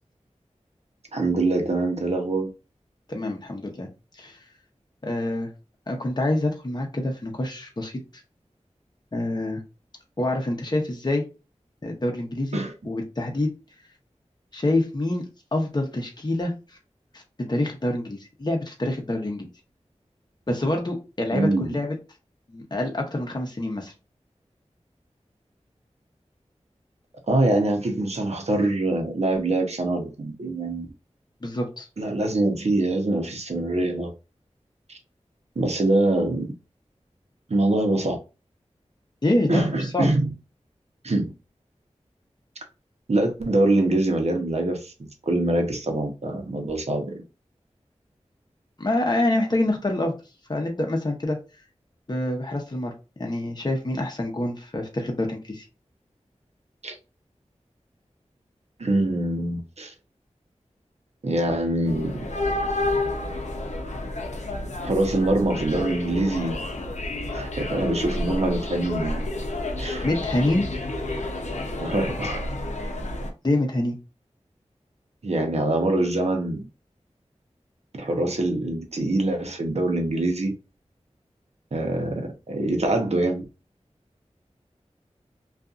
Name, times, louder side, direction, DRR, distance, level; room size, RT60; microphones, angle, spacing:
voice 1, 1.1-2.5 12.5-12.7 21.3-21.8 27.3-30.9 32.0-34.1 34.9-35.0 35.6-36.5 37.5-38.2 39.5-40.3 41.0-41.3 43.1-47.1 56.8-57.0 58.8-59.9 61.2-62.1 64.8-66.6 67.3-69.3 69.8-70.1 71.8-72.4 75.2-76.6 77.9-80.5 81.7-83.4, right 2 dB, 65° right, 0.8 m, -24 dB
voice 2, 3.1-3.9 4.1-4.4 5.0-5.5 5.9-7.9 9.1-9.6 10.2-11.2 11.8-13.5 14.5-16.5 17.1-17.2 17.5-19.4 20.5-22.0 22.5-23.9 31.4-31.9 39.2-40.1 48.8-50.1 50.5-51.4 52.1-52.9 53.2-55.6 70.0-70.7 73.4-74.0, left 1 dB, 35° left, 0.8 m, -26 dB
sound 1, 61.9-73.3, left 2 dB, 75° left, 0.6 m, -30 dB
2.6 x 2.4 x 2.4 m
wide cardioid pair, 45°, 12 cm